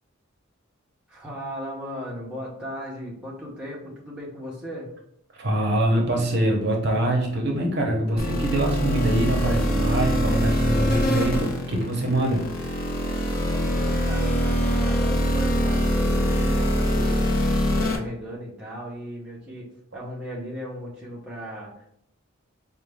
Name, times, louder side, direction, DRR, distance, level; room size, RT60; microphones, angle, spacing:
voice 1, 1.1-4.9 13.4-17.2 17.6-21.9, equal, 5° right, -5 dB, 0.9 m, -37 dB
voice 2, 5.4-12.4, right 1 dB, 50° right, 0 dB, 0.7 m, -24 dB
sound 1, 8.2-18.0, equal, 40° left, 0.6 m, -23 dB
4.8 x 2.2 x 3.4 m, 0.73 s
head